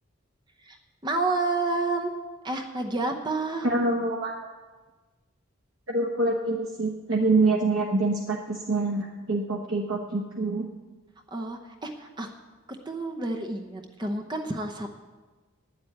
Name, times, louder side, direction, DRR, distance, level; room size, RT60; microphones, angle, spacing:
voice 1, 1.0-2.1 2.4-3.7 11.3-12.3 12.9-14.9, right 3 dB, 20° right, 4 dB, 0.8 m, -29 dB
voice 2, 3.6-4.5 5.9-10.7, right 2 dB, 70° right, -1 dB, 1.1 m, -26 dB
10.0 x 7.9 x 9.1 m, 1.3 s
head